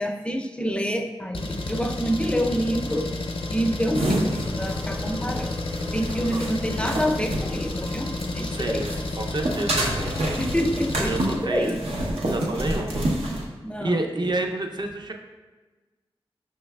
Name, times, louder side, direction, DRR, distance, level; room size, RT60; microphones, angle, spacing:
voice 1, 0.0-3.1 3.5-5.5 5.8-8.9 10.4-11.8 13.6-14.0, equal, 10° left, 5 dB, 0.4 m, -27 dB
Engine, 1.3-11.4, left 2 dB, 60° left, 0.5 m, -31 dB
sound 1, 3.9-8.4 8.8-13.4, right 1 dB, 90° right, 0.7 m, -28 dB
voice 2, 8.5-8.9 9.2-10.2 11.1-11.8 12.3-13.1 13.8-15.1, right 2 dB, 45° right, 3 dB, 0.5 m, -29 dB
5.6 x 3.2 x 2.2 m, 1.3 s
cardioid pair, 40°, 10 cm